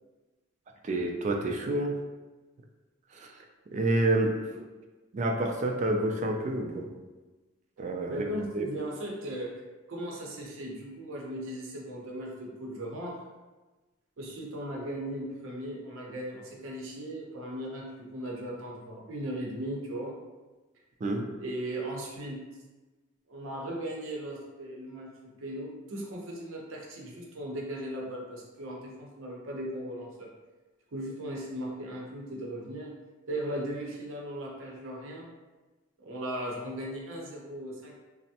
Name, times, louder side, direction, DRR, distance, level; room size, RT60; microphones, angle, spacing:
voice 1, 0.8-1.9 3.1-3.3 3.7-4.4 5.1-6.9 7.8-8.6 21.0-21.3, right 2 dB, 35° right, 3 dB, 0.3 m, -28 dB
voice 2, 8.1-13.2 14.2-20.2 21.4-22.4 23.3-25.1 25.4-30.3 30.9-32.9 33.3-35.3 36.0-38.0, right 1 dB, 90° right, -2 dB, 0.7 m, -37 dB
3.3 x 2.0 x 2.7 m, 1.2 s
head